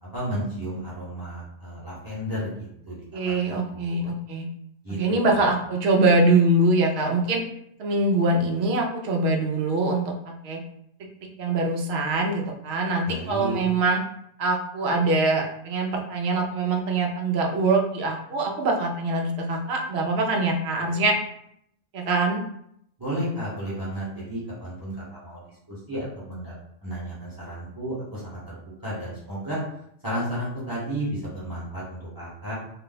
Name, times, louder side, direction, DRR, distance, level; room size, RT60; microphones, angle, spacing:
voice 1, 0.0-4.1 4.8-5.0 5.4-5.5 13.1-13.6 23.0-26.6 26.8-28.6 28.8-29.6 30.0-32.5, equal, 20° right, -8 dB, 0.9 m, -33 dB
voice 2, 3.1-4.5 4.9-7.4 7.8-10.6 11.4-14.0 14.4-21.2 21.9-22.4, right 2 dB, 65° right, 2 dB, 0.8 m, -23 dB
2.5 x 2.2 x 3.9 m, 0.74 s
omnidirectional pair, 1.3 m